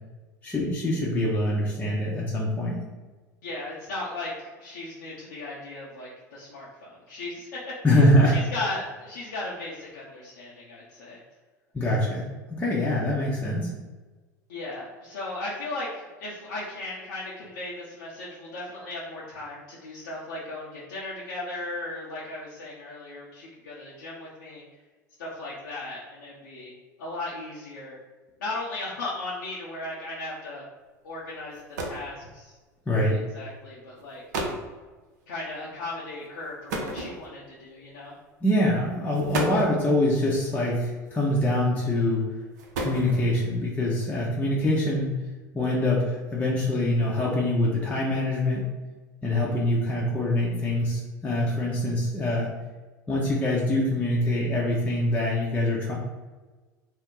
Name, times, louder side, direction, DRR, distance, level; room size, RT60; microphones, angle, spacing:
voice 1, 0.4-2.8 7.8-8.4 11.7-12.3 12.6-13.7 32.9-33.2 38.4-42.2 42.8-45.2 45.5-48.6 49.2-52.5 53.1-55.9, left 1 dB, 15° left, -5 dB, 0.7 m, -24 dB
voice 2, 3.4-11.2 14.5-24.6 25.2-26.7 27.0-28.0 28.4-30.6 31.0-32.5 33.3-34.2 35.3-38.1, left 2 dB, 75° left, -7 dB, 0.6 m, -36 dB
sound 1, 31.2-31.3 31.5-32.1 33.1-33.3 34.0-34.1 34.3-34.7 36.7-37.5 38.5-38.6 39.1-39.8 41.1-41.6 42.4-43.4, right 2 dB, 70° right, 0.5 m, -32 dB
2.6 x 2.1 x 3.7 m, 1.3 s
hypercardioid pair, 75°, 10 cm